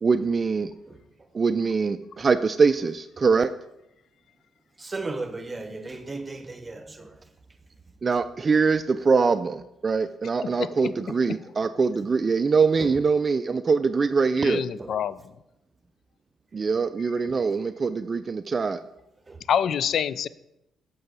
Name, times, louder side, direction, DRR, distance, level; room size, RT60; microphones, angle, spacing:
voice 1, 0.0-0.7 1.3-3.5 8.0-14.6 16.5-18.8, right 5 dB, 40° right, 0.3 m, -23 dB
voice 2, 4.8-7.2 8.4-8.5 10.0-10.1 12.7-13.0 14.8-14.9 16.7-16.8 17.3-17.4 18.6-18.7 19.3-19.4, right 3 dB, 25° right, 1.1 m, -36 dB
voice 3, 10.4-10.9 14.4-15.2 19.5-20.3, left 8 dB, 65° left, 0.3 m, -26 dB
7.6 x 7.0 x 4.0 m
supercardioid pair, 60°, 0 cm